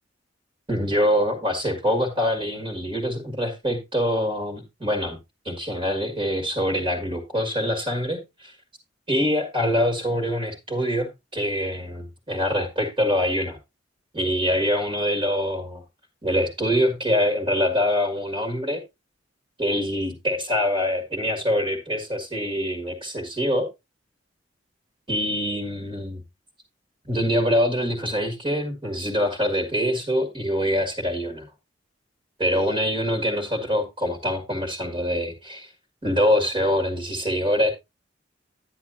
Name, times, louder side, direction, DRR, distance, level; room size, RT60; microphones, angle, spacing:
voice 1, 0.7-5.2 5.4-8.5 9.1-13.6 14.1-15.8 16.2-18.8 19.6-23.7 25.1-26.2 27.1-31.4 32.4-35.7 36.0-37.7, equal, 25° right, 1.9 m, -24 dB
10.0 x 10.0 x 2.6 m
head